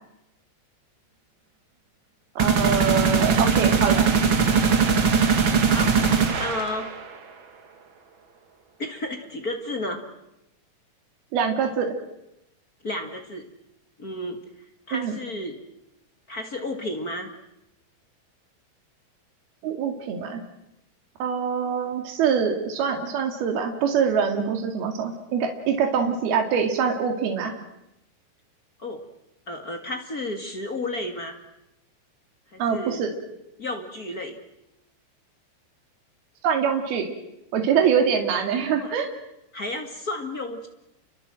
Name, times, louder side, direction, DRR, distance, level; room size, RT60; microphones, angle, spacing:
sound 1, 2.4-7.1, right 5 dB, 40° right, 2.2 m, -20 dB
voice 1, 2.4-4.1 11.3-11.9 14.9-15.1 19.6-20.4 21.2-27.5 32.6-33.1 36.4-37.1 37.5-39.1, right 7 dB, 75° right, 4 dB, 4.3 m, -24 dB
voice 2, 6.4-7.0 8.8-10.0 12.8-13.5 14.0-14.4 14.9-15.6 16.3-17.3 26.3-26.4 27.4-27.6 28.8-29.0 29.5-31.4 32.5-33.0 33.6-34.4 38.8-39.0 39.5-40.7, left 1 dB, 30° left, 4 dB, 1.8 m, -32 dB
29.5 x 23.5 x 7.7 m, 0.88 s
omnidirectional pair, 4.5 m